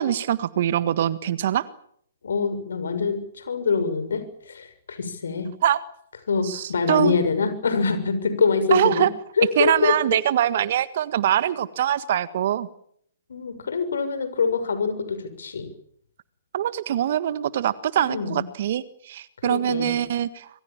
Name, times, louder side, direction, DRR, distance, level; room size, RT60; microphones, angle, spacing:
voice 1, 0.0-1.7 5.6-5.8 6.4-7.2 8.7-9.1 9.6-12.7 16.5-20.5, right 11 dB, 50° right, 15 dB, 1.6 m, -23 dB
voice 2, 2.2-5.5 6.3-9.1 9.4-9.9 13.3-15.7 17.9-18.4 19.4-19.9, left 5 dB, 70° left, 11 dB, 6.8 m, -25 dB
26.5 x 24.5 x 7.5 m, 0.69 s
figure-of-eight pair, 125°, 0 cm